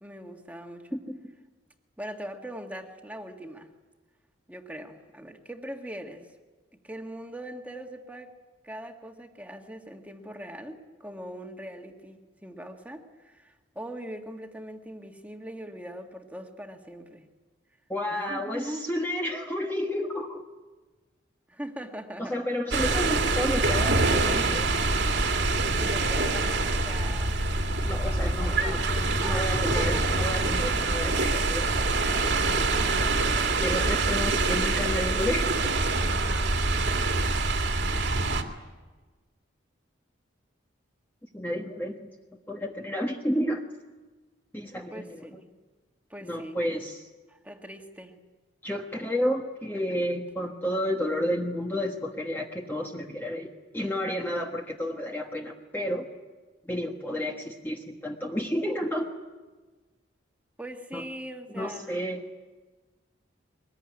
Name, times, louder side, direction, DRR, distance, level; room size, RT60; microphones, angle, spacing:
voice 1, 0.0-1.0 2.0-3.7 4.5-6.3 6.8-8.3 8.6-17.3 18.1-18.9 21.5-22.4 25.8-27.4 28.0-30.1 32.7-33.2 36.0-36.7 44.9-45.5 46.1-46.6 47.3-48.2 60.6-62.1, right 1 dB, 10° right, 3 dB, 1.8 m, -41 dB
voice 2, 17.9-20.4 22.2-24.7 27.8-28.8 29.2-31.7 33.6-35.5 37.8-38.0 41.3-42.1 42.5-43.6 44.5-45.4 46.2-47.1 48.6-56.1 56.6-59.1 60.9-61.0 61.5-62.2, equal, 10° left, 0 dB, 1.4 m, -31 dB
sound 1, 22.7-38.4, right 3 dB, 60° right, 2.3 m, -25 dB
sound 2, 23.5-37.4, equal, 85° left, 6.6 m, -51 dB
23.0 x 21.0 x 10.0 m, 1.3 s
head